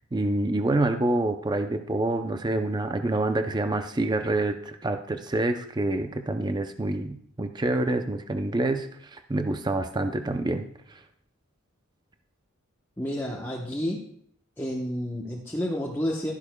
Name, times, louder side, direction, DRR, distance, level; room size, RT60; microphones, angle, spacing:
voice 1, 0.1-11.0, right 2 dB, 20° right, 7 dB, 0.5 m, -27 dB
voice 2, 13.0-14.0 14.6-16.3, equal, 10° left, -3 dB, 0.9 m, -30 dB
12.0 x 11.0 x 2.2 m, 0.63 s
head